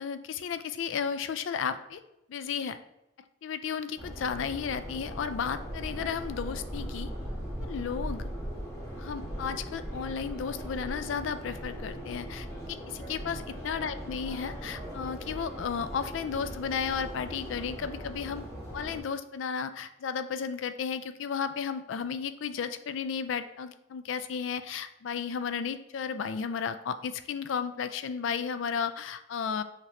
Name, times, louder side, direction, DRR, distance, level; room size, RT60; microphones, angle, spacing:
voice 1, 0.0-2.0 2.3-2.8 3.4-7.1 7.6-8.3 9.0-13.4 13.6-18.4 18.7-29.6, left 6 dB, 70° left, 11 dB, 0.3 m, -33 dB
Subway metro underground, 4.0-19.0, equal, 15° left, 1.4 m, -39 dB
5.8 x 3.1 x 2.9 m, 0.86 s
head